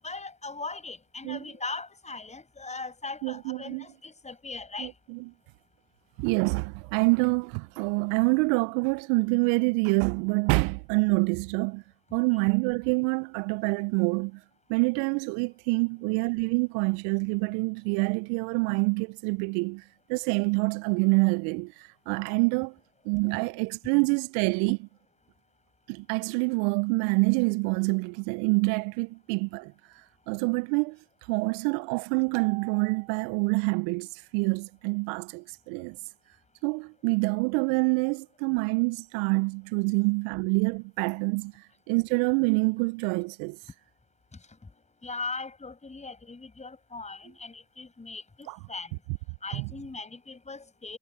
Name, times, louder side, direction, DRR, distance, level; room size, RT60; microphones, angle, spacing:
voice 1, 0.0-4.9 12.3-12.4 45.0-49.0 49.4-51.0, left 3 dB, 20° left, 6.7 m, -39 dB
voice 2, 3.2-3.8 4.8-5.3 6.2-11.8 12.1-14.4 14.7-19.8 20.1-22.7 23.0-24.8 25.9-29.7 30.3-31.0 31.3-36.0 36.6-43.6 48.5-48.6 49.5-49.7, right 31 dB, 65° right, 1.1 m, -26 dB
figure-of-eight pair, 60°, 36 cm